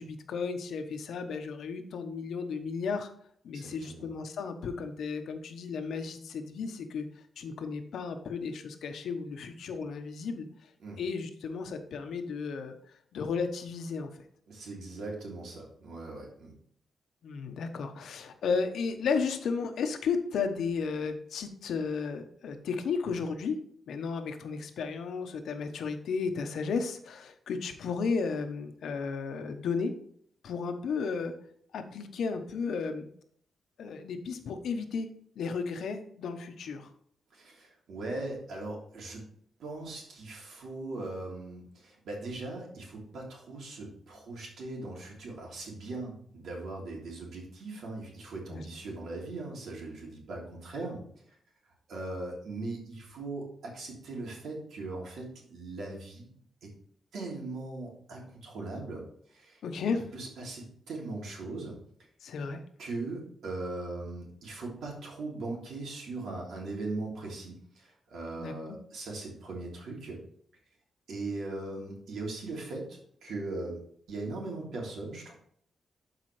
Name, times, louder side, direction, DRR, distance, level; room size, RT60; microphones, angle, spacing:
voice 1, 0.0-3.1 3.4-7.1 7.4-10.5 11.0-12.7 13.1-14.1 17.2-23.6 23.9-29.9 30.4-31.3 31.7-33.1 33.8-35.1 35.4-36.9 48.5-48.6 59.6-60.1 62.2-62.6 68.4-68.5, left 5 dB, 80° left, 7 dB, 1.0 m, -33 dB
voice 2, 3.5-4.1 10.8-11.0 14.5-16.5 37.3-39.2 39.6-51.0 51.9-56.3 56.6-56.7 57.1-59.0 59.3-59.6 60.1-61.8 62.8-70.2 71.1-73.8 74.1-75.3, right 2 dB, 80° right, -2 dB, 3.0 m, -39 dB
12.0 x 4.9 x 3.3 m, 0.63 s
wide cardioid pair, 145°, 0 cm